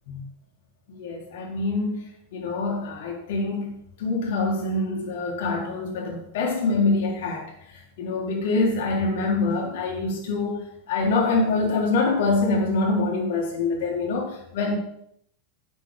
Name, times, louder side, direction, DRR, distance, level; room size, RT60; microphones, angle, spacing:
voice 1, 0.9-2.0 2.3-7.4 8.0-10.6 10.9-14.8, left 3 dB, 70° left, -1 dB, 3.7 m, -25 dB
9.3 x 8.3 x 5.1 m, 0.72 s
hypercardioid pair, 110°, 0 cm